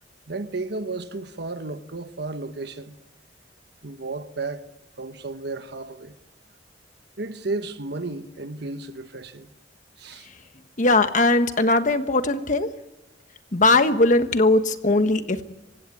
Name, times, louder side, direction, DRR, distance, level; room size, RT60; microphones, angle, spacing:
voice 1, 0.3-3.0 3.8-4.7 5.0-6.1 7.2-9.5 10.0-10.3, right 3 dB, 65° right, 1.2 m, -33 dB
voice 2, 10.8-12.7 13.5-15.4, left 2 dB, 45° left, 1.3 m, -19 dB
26.5 x 16.0 x 9.7 m
head